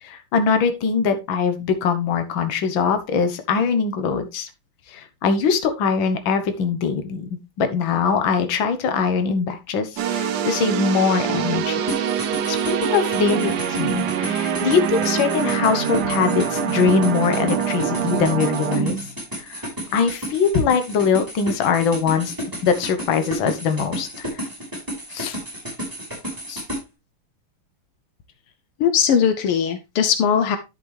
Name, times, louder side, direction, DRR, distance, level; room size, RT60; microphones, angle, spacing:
voice 1, 0.0-4.5 4.9-7.3 7.6-11.8 12.5-19.0 19.3-22.3 22.6-24.5 25.1-25.4 26.5-26.6, left 5 dB, 65° left, 7 dB, 1.8 m, -22 dB
sound 1, 10.0-19.2, right 8 dB, 65° right, 1.0 m, -24 dB
sound 2, 11.9-26.8, equal, 10° right, 4.8 m, -32 dB
voice 2, 28.8-30.6, left 7 dB, 80° left, 9 dB, 1.7 m, -19 dB
11.0 x 6.0 x 3.3 m, 0.25 s
omnidirectional pair, 2.4 m